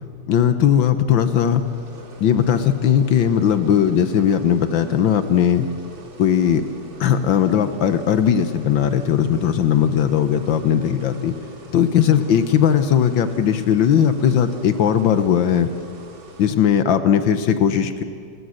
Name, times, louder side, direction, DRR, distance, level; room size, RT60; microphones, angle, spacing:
voice 1, 0.3-1.6 2.2-5.7 6.2-6.6 7.0-11.3 11.7-15.7 16.4-18.0, left 8 dB, 80° left, 10 dB, 1.7 m, -18 dB
sound 1, 1.1-16.5, right 1 dB, 90° right, 3.2 m, -44 dB
28.5 x 16.5 x 6.5 m, 2.2 s
omnidirectional pair, 2.1 m